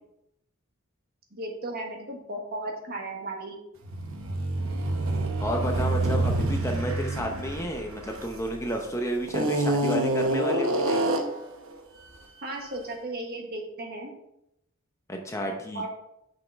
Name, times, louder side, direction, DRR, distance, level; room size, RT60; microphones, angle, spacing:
voice 1, 1.3-3.6 12.4-14.1 15.7-15.9, right 2 dB, 45° right, 1 dB, 1.4 m, -35 dB
sound 1, 3.8-8.7 9.3-11.5, right 2 dB, 65° right, 0.9 m, -27 dB
voice 2, 5.4-11.0 15.1-15.9, equal, 15° left, 2 dB, 0.8 m, -31 dB
6.2 x 5.6 x 4.6 m, 0.81 s
head